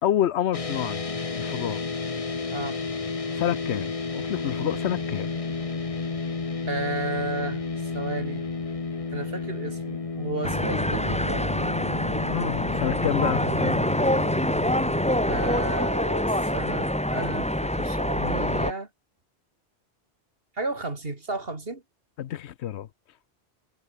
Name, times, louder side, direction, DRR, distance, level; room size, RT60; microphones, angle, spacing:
voice 1, 0.0-1.0 1.4-1.8 3.3-5.3 12.3-13.4 22.2-22.9, left 11 dB, 80° left, 1.0 m, -28 dB
Dist Chr EMj, 0.5-16.9, left 4 dB, 30° left, 1.2 m, -32 dB
voice 2, 6.7-8.5 9.1-11.5 13.4-13.9 15.3-18.9 20.6-21.8, right 2 dB, 60° right, 3.2 m, -33 dB
sound 1, 10.4-18.7, left 1 dB, 5° left, 1.6 m, -25 dB
omnidirectional pair, 1.1 m